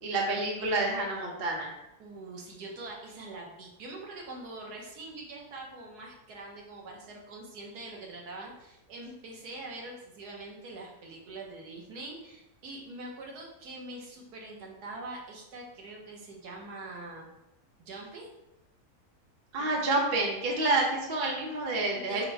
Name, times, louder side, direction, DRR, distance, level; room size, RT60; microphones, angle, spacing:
voice 1, 0.0-1.7 19.5-22.2, right 2 dB, 45° right, -1 dB, 0.8 m, -28 dB
voice 2, 2.0-17.3 17.8-18.3 19.6-20.0 21.9-22.2, right 2 dB, 85° right, -1 dB, 1.5 m, -44 dB
4.4 x 2.2 x 4.4 m, 0.92 s
omnidirectional pair, 1.6 m